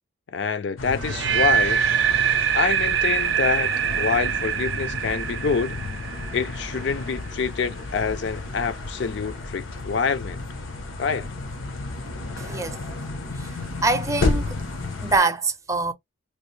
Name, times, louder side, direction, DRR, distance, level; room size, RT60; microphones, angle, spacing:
voice 1, 0.3-1.8 2.5-3.7 4.0-5.8 6.3-10.4 11.0-11.3, left 5 dB, 65° left, 0.4 m, -26 dB
sound 1, 0.8-15.2, left 3 dB, 90° left, 0.9 m, -32 dB
sound 2, 1.0-7.0, right 8 dB, 70° right, 0.5 m, -24 dB
voice 2, 12.4-12.8 13.4-13.5 13.8-14.5 15.0-15.9, right 3 dB, 15° right, 0.5 m, -24 dB
3.1 x 2.5 x 3.1 m
head